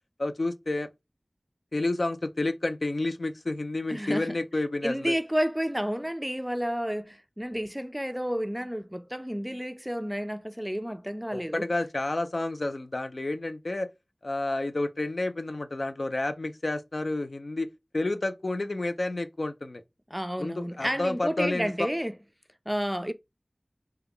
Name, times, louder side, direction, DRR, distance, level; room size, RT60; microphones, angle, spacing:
voice 1, 0.2-0.9 1.7-5.1 11.3-13.9 14.2-17.7 17.9-19.8 20.4-21.9, left 2 dB, 75° left, 0.4 m, -30 dB
voice 2, 3.9-4.3 4.8-11.7 20.1-22.2 22.7-23.1, equal, 5° right, 0.3 m, -31 dB
3.5 x 2.2 x 3.3 m
wide cardioid pair, 40°, 0 cm